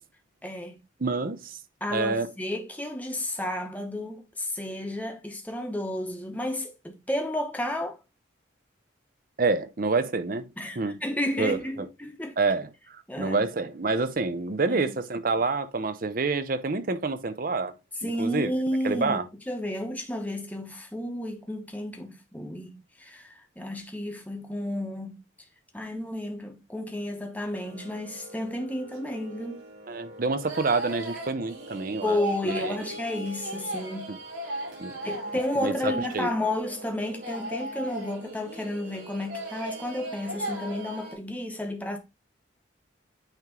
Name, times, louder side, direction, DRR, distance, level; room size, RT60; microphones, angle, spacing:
voice 1, 0.4-0.8 1.8-8.0 10.6-12.4 13.1-13.4 14.7-14.8 18.0-19.2 19.5-25.2 25.7-29.6 32.0-34.2 35.0-42.0, left 1 dB, 10° left, 0.9 m, -32 dB
voice 2, 1.0-1.6 1.9-2.3 9.4-10.5 10.8-11.0 11.4-11.6 12.4-17.7 18.0-18.5 18.8-19.2 29.9-32.2 32.4-32.6 34.1-34.2 34.8-35.0 35.6-36.3, right 3 dB, 45° right, 0.6 m, -27 dB
sound 1, 27.5-41.2, right 1 dB, 75° right, 4.4 m, -38 dB
8.9 x 3.0 x 3.7 m
head